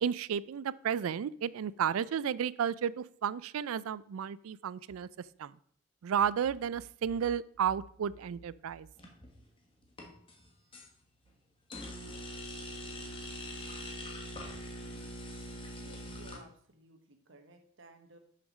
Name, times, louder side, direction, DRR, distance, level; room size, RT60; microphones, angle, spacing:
voice 1, 0.0-5.1 5.4-5.5 6.0-8.9, right 8 dB, 85° right, 19 dB, 0.4 m, -32 dB
sound 1, 9.0-9.4 9.9-10.9 11.7-16.4, equal, 25° left, 1.4 m, -43 dB
voice 2, 15.8-18.2, right 2 dB, 60° right, 5 dB, 1.2 m, -57 dB
6.2 x 5.8 x 6.2 m, 0.62 s
head